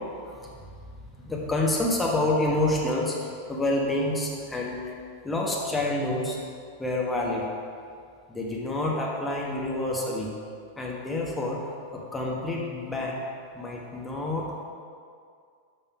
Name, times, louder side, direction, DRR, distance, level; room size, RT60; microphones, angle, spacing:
voice 1, 0.9-5.0 5.2-6.4 6.8-7.5 8.3-10.3 10.8-13.2 13.5-14.6, left 2 dB, 15° left, -2 dB, 1.1 m, -28 dB
6.5 x 5.5 x 5.7 m, 2.3 s
figure-of-eight pair, 90°, 0 cm